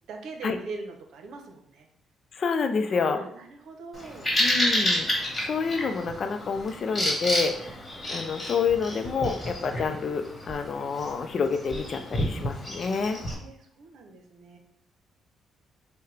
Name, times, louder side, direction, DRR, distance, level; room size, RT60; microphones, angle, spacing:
voice 1, 0.1-1.9 2.9-4.3 7.4-7.7 12.9-14.6, right 3 dB, 75° right, 4 dB, 0.8 m, -42 dB
voice 2, 2.3-3.2 4.4-7.8 8.1-13.2, left 5 dB, 50° left, 7 dB, 0.5 m, -28 dB
Bird vocalization bird call bird song, 3.9-13.4, left 1 dB, 20° left, 1.4 m, -30 dB
5.5 x 2.2 x 3.3 m, 0.68 s
cardioid pair, 90°, 0 cm